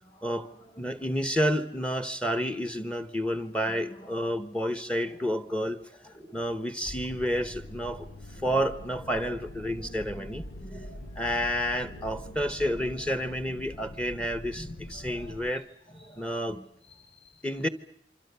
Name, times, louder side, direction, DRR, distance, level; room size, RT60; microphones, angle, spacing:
voice 1, 0.0-1.1 3.8-4.2 4.6-5.2 5.6-5.7 6.1-6.4 8.3-8.6 9.1-10.3 10.5-11.2 11.8-12.2 12.4-12.9 13.7-13.9 14.6-14.7 14.9-15.3 15.9-16.6 16.9-17.4, right 1 dB, 25° left, 7.4 m, -49 dB
voice 2, 0.8-5.8 6.0-8.1 8.3-10.4 11.2-15.7 16.2-16.6 17.4-17.7, equal, 5° left, 1.1 m, -30 dB
sound 1, 6.8-15.5, left 1 dB, 85° left, 1.0 m, -44 dB
27.0 x 25.5 x 6.9 m
head